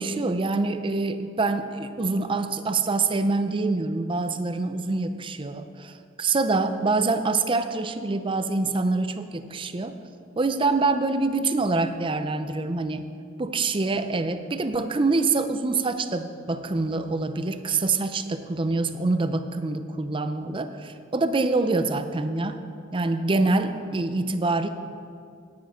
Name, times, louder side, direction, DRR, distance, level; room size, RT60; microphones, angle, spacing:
voice 1, 0.0-10.0 10.4-13.1 13.4-22.6 22.9-24.7, right 3 dB, 25° right, 9 dB, 0.5 m, -25 dB
10.0 x 9.6 x 5.0 m, 2.3 s
head